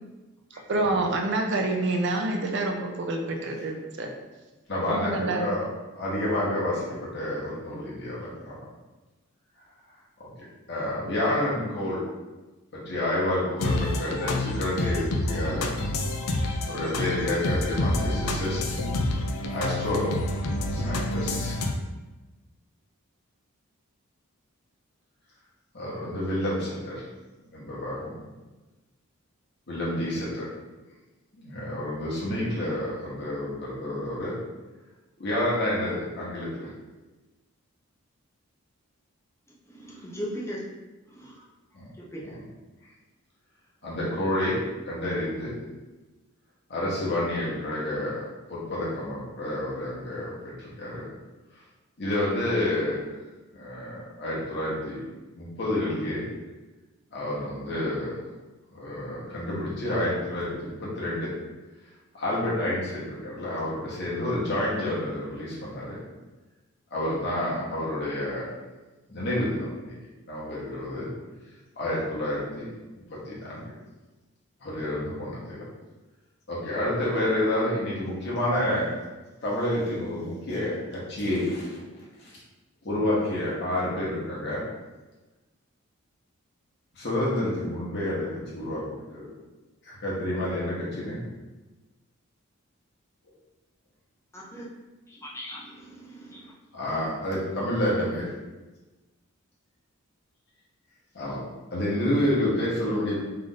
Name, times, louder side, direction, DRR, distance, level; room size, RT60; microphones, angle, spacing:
voice 1, 0.7-4.1 4.9-5.7, right 2 dB, 50° right, 2 dB, 0.5 m, -27 dB
voice 2, 4.7-5.6 6.0-8.5 10.2-10.3 10.7-12.0 12.7-15.7 16.7-18.8 19.5-20.2 20.7-21.6 25.7-27.0 27.5-28.1 29.7-30.4 31.4-34.3 35.2-36.7 41.7-41.8 43.8-44.6 44.9-45.5 46.7-48.2 48.5-51.0 52.0-53.0 53.5-55.0 55.3-56.2 57.1-58.1 58.7-61.3 62.1-66.0 66.9-68.5 69.1-69.9 70.3-71.1 71.8-72.6 73.3-73.6 74.6-75.6 76.5-78.9 79.4-81.8 82.2-82.3 82.8-84.6 87.0-88.8 89.1-89.3 89.8-91.2 96.7-98.3 101.1-101.4 101.7-103.2, left 1 dB, 50° left, -7 dB, 1.1 m, -29 dB
sound 1, 13.6-21.7, left 1 dB, 80° left, 0.4 m, -28 dB
voice 3, 39.7-40.6 41.1-41.4 42.0-42.4 94.3-94.6 95.1-95.6 96.1-96.5, equal, 10° left, -4 dB, 0.6 m, -38 dB
3.3 x 2.6 x 3.9 m, 1.1 s
head